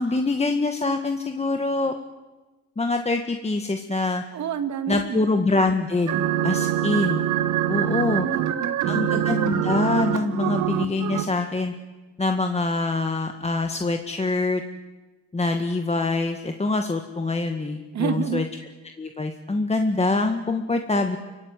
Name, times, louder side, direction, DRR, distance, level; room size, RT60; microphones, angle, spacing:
voice 1, 0.0-2.0 2.8-4.2 4.9-6.1 6.4-7.2 7.7-8.3 8.9-11.7 12.2-14.6 15.3-18.4 19.0-21.2, left 3 dB, 20° left, 5 dB, 1.7 m, -24 dB
voice 2, 4.3-5.2 8.2-9.5 17.9-18.4, right 8 dB, 65° right, 9 dB, 2.0 m, -29 dB
sound 1, 6.1-11.2, right 11 dB, 85° right, 1.8 m, -24 dB
29.5 x 16.0 x 9.5 m, 1.2 s
cardioid pair, 90°, 30 cm